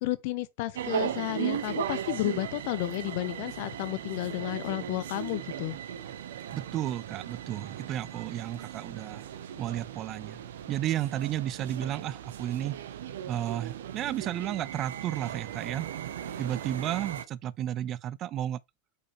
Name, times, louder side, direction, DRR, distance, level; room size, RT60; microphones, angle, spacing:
voice 1, 0.0-5.8, left 18 dB, 50° left, 0.8 m, -32 dB
sound 1, 0.7-17.2, right 10 dB, 60° right, 0.7 m, -37 dB
voice 2, 6.5-9.2 9.6-10.4 10.7-12.8 13.3-15.9 16.4-18.6, right 12 dB, 35° right, 0.5 m, -33 dB
7.8 x 5.0 x 3.1 m
figure-of-eight pair, 90°, 0 cm